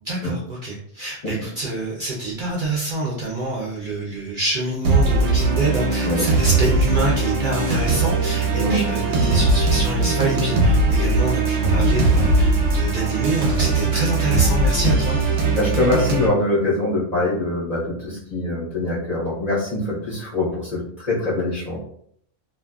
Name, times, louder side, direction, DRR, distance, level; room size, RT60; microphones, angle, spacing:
voice 1, 0.0-15.2, right 2 dB, 55° right, -5 dB, 0.6 m, -26 dB
sound 1, 4.8-16.3, right 3 dB, 85° right, 1.0 m, -19 dB
voice 2, 15.5-21.8, left 1 dB, 40° left, -7 dB, 0.8 m, -23 dB
2.5 x 2.4 x 2.3 m, 0.64 s
omnidirectional pair, 1.3 m